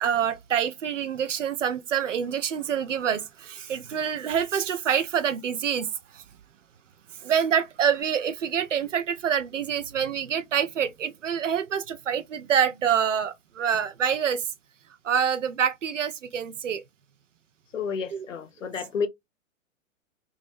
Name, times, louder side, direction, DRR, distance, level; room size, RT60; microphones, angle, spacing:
voice 1, 0.0-6.2 7.2-14.5 15.0-16.8 18.1-18.3, right 8 dB, 65° right, 0.5 m, -26 dB
voice 2, 17.7-19.1, left 6 dB, 70° left, 0.6 m, -30 dB
2.4 x 2.1 x 2.4 m
figure-of-eight pair, 110°, 40 cm